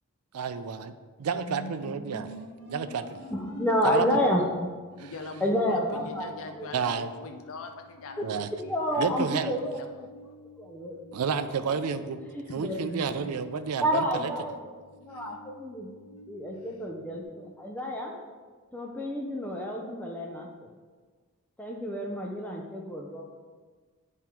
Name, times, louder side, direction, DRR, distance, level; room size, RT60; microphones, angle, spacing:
voice 1, 0.3-2.3 2.7-3.2 3.8-4.1 5.0-5.1 6.7-7.1 8.2-8.5 9.0-9.6 11.1-12.2 12.5-14.3, right 6 dB, 80° right, 10 dB, 0.4 m, -30 dB
sound 1, 1.3-17.2, equal, 85° left, 1.2 m, -48 dB
voice 2, 3.3-4.5 5.4-6.7 8.2-8.3 8.7-9.8 10.6-11.0 12.3-13.1 13.8-14.7 15.0-15.9 16.3-18.2 18.7-20.7 21.6-23.3, equal, 5° left, 0 dB, 0.5 m, -30 dB
voice 3, 5.0-9.1 9.6-10.1 12.5-12.6 15.1-15.2, left 4 dB, 60° left, 5 dB, 0.5 m, -42 dB
9.1 x 3.6 x 4.4 m, 1.5 s
head